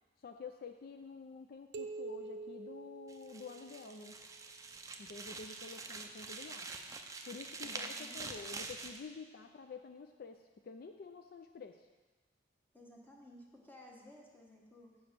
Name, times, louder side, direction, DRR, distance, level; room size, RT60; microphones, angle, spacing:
voice 1, 0.2-4.2 5.0-6.7 7.3-11.9, left 4 dB, 55° left, 6 dB, 0.4 m, -49 dB
sound 1, 1.7-4.1, right 3 dB, 65° right, 0.5 m, -46 dB
sound 2, 3.1-9.0, right 4 dB, 20° right, 0.4 m, -46 dB
voice 2, 7.6-8.5 12.7-14.9, left 1 dB, 10° left, -1 dB, 1.2 m, -56 dB
6.9 x 5.2 x 6.6 m, 1.3 s
head